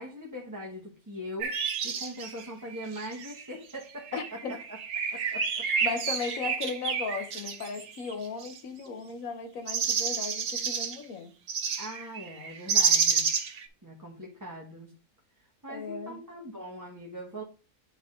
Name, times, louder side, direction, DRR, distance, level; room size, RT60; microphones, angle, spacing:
voice 1, 0.0-1.5 1.8-4.6 5.1-5.7 11.8-13.3 13.8-14.9 15.6-17.4, equal, 15° right, 1.1 m, -41 dB
sound 1, 1.4-3.4 4.0-8.6 9.7-11.0 11.5-13.7, right 6 dB, 60° right, 1.2 m, -30 dB
voice 2, 4.1-4.6 5.8-11.4 15.7-16.2, left 5 dB, 70° left, 1.4 m, -36 dB
9.5 x 4.0 x 3.8 m
omnidirectional pair, 1.5 m